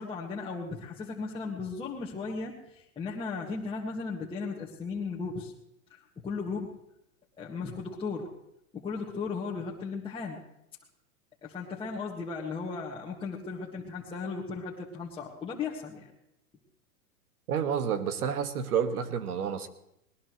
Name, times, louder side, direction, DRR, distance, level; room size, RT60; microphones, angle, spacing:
voice 1, 0.0-5.5 5.9-6.7 7.4-8.3 8.7-10.4 11.4-16.1, left 4 dB, 10° left, -5 dB, 1.8 m, -36 dB
voice 2, 17.5-19.7, right 7 dB, 75° right, 9 dB, 1.8 m, -29 dB
20.0 x 19.5 x 3.1 m, 0.82 s
hypercardioid pair, 130°, 44 cm